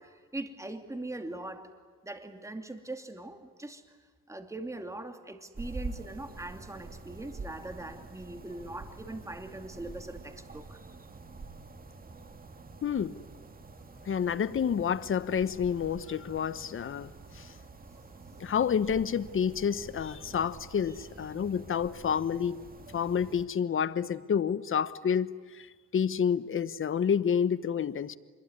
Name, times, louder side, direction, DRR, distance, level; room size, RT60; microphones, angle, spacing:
voice 1, 0.0-1.7 2.0-3.8 4.3-10.9 20.9-21.0, right 2 dB, 10° right, 2.5 m, -41 dB
sound 1, 5.5-23.4, right 3 dB, 30° right, 2.2 m, -47 dB
voice 2, 12.8-13.2 14.1-17.5 18.4-22.6 22.9-25.7 25.9-28.2, left 7 dB, 45° left, 1.1 m, -29 dB
25.5 x 22.0 x 9.7 m
cardioid pair, 90°, 30 cm